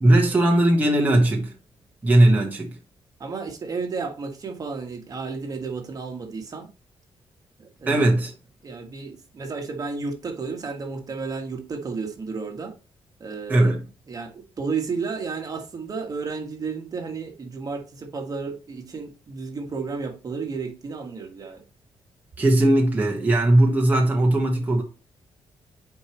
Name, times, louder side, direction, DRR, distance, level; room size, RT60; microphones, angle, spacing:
voice 1, 0.0-1.5 2.0-2.8 7.9-8.3 13.5-13.8 22.4-24.8, right 1 dB, 15° right, 1.3 m, -18 dB
voice 2, 3.2-6.7 7.6-8.1 8.6-12.7 13.2-13.7 14.1-21.6, right 4 dB, 40° right, 1.6 m, -32 dB
9.3 x 4.8 x 3.0 m
wide cardioid pair, 150°, 10 cm